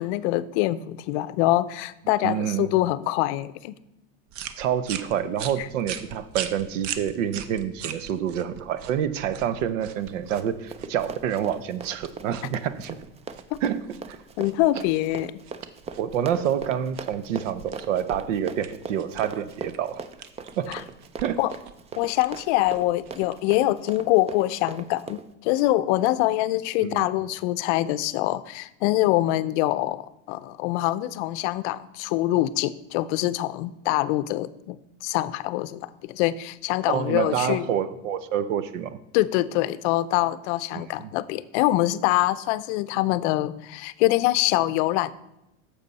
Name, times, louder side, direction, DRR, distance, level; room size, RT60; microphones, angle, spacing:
voice 1, 0.0-3.8 5.6-5.7 13.5-13.6 14.4-15.3 20.7-20.8 21.4-21.5 22.0-37.7 39.1-45.1, left 16 dB, 65° left, 16 dB, 0.6 m, -24 dB
voice 2, 2.2-2.7 4.6-13.0 13.6-13.8 14.1-14.2 16.0-20.0 20.6-20.8 21.2-21.4 26.8-27.1 36.9-39.0 40.7-41.1, right 9 dB, 85° right, 14 dB, 0.8 m, -27 dB
sound 1, 4.3-23.9, right 9 dB, 50° right, 0.8 m, -41 dB
Run, 10.0-25.3, right 5 dB, 20° right, 0.4 m, -39 dB
9.7 x 7.1 x 4.1 m, 0.88 s
supercardioid pair, 115°, 36 cm